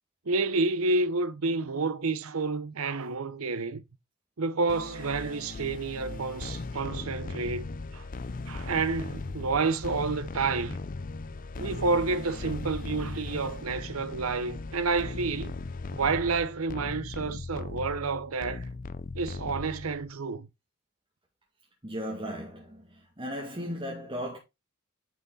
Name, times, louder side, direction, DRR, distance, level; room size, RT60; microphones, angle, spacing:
voice 1, 0.3-3.8 4.4-8.0 8.5-10.8 11.6-15.5 15.9-18.7 19.1-20.5, right 3 dB, 90° right, 0.8 m, -29 dB
sound 1, 4.7-20.1, left 3 dB, 40° left, 0.5 m, -38 dB
voice 2, 21.8-24.4, equal, 25° right, 2.1 m, -36 dB
9.2 x 5.9 x 4.1 m
head